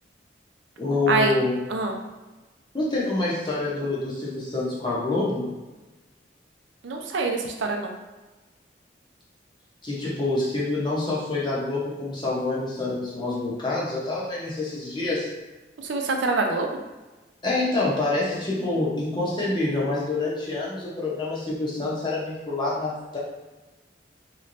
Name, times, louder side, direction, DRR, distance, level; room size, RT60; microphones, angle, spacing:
voice 1, 0.8-1.6 2.7-5.5 9.8-15.3 17.4-23.2, left 2 dB, 25° left, -6 dB, 0.8 m, -27 dB
voice 2, 6.8-8.0 15.8-16.7, right 3 dB, 85° right, 3 dB, 0.5 m, -25 dB
3.1 x 3.0 x 2.6 m, 1.2 s
head